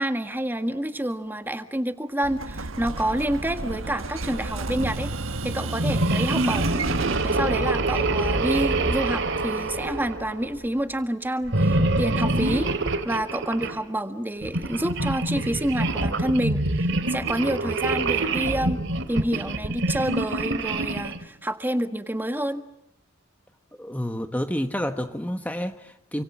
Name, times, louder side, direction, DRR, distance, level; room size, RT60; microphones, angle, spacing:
voice 1, 0.0-5.1 5.4-6.9 7.2-12.7 13.0-18.8 19.1-22.6, right 1 dB, 10° right, 9 dB, 1.6 m, -28 dB
Explosion, 2.2-10.9, right 2 dB, 75° right, 1.4 m, -32 dB
sound 1, 5.8-10.6 11.5-13.8 14.4-21.2, right 2 dB, 60° right, 2.4 m, -26 dB
voice 2, 23.8-26.2, equal, 10° left, 7 dB, 1.2 m, -29 dB
28.5 x 26.0 x 7.5 m, 0.78 s
head